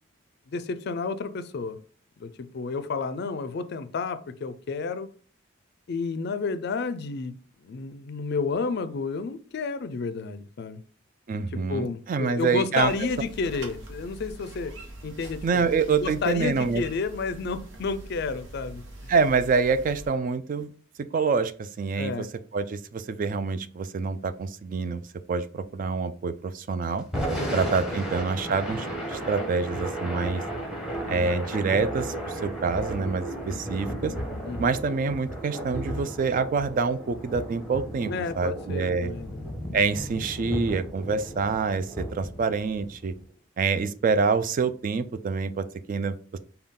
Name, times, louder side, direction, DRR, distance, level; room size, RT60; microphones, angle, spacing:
voice 1, 0.5-1.8 2.2-5.1 5.9-10.8 11.5-14.7 15.0-15.6 15.9-19.1 22.0-22.3 27.4-27.6 27.9-28.1 34.5-34.7 38.1-39.5, left 4 dB, 55° left, 0.4 m, -31 dB
voice 2, 11.3-12.9 15.4-16.8 19.1-20.7 21.1-22.3 22.5-25.0 25.3-27.0 27.5-30.4 31.1-34.1 34.6-39.1 39.7-43.2 43.6-46.4, right 4 dB, 45° right, 0.3 m, -26 dB
sound 1, 12.8-20.1, right 1 dB, 65° right, 1.0 m, -43 dB
Thunder / Rain, 27.0-43.2, right 1 dB, 5° right, 0.9 m, -34 dB
5.3 x 2.3 x 3.6 m
head